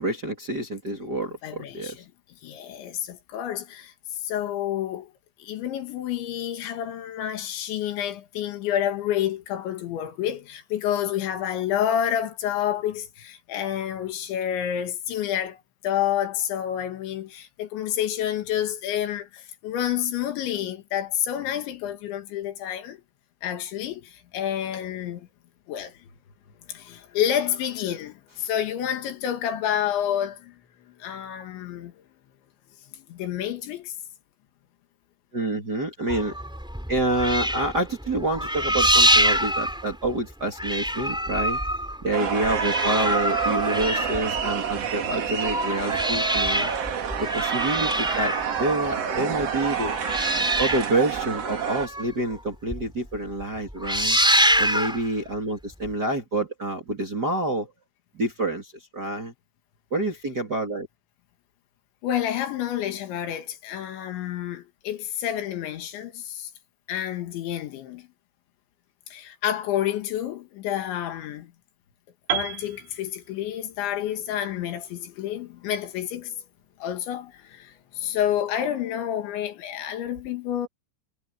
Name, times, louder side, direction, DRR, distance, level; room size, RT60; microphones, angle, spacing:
voice 1, 0.0-2.0 35.3-36.3 36.9-41.6 42.0-46.7 47.2-49.9 50.6-54.2 54.6-57.7 58.1-59.3 59.9-60.9, right 2 dB, 30° right, 2.3 m, -27 dB
voice 2, 1.4-1.9 2.4-3.9 4.2-5.1 5.4-23.0 23.4-25.3 25.7-26.0 26.7-30.6 31.0-32.0 32.9-33.9 62.0-66.5 66.9-68.1 69.1-71.5 72.3-76.4 76.8-80.7, left 10 dB, 75° left, 4.1 m, -29 dB
sound 1, 36.1-40.3 40.6-44.8 45.3-52.4 52.7-52.8 53.1-53.4 53.7-55.1 55.9-56.0, equal, ahead, 2.5 m, -25 dB
sound 2, 42.1-51.9, right 8 dB, 50° right, 2.0 m, -28 dB
Piano, 72.3-76.2, right 10 dB, 80° right, 5.9 m, -35 dB
omnidirectional pair, 5.5 m